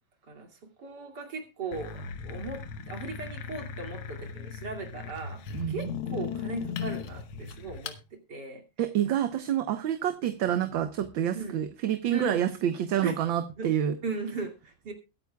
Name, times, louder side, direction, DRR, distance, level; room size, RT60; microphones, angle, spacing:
voice 1, 0.2-8.6 11.3-11.6 12.1-12.5 13.0-13.2 13.6-13.7 14.0-14.9, right 3 dB, 55° right, 4 dB, 3.1 m, -38 dB
sound 1, 1.7-8.0, left 6 dB, 85° left, 1.9 m, -37 dB
voice 2, 5.5-5.9 8.8-13.9, right 10 dB, 75° right, 9 dB, 1.7 m, -28 dB
22.0 x 9.3 x 2.3 m, 0.28 s
omnidirectional pair, 2.2 m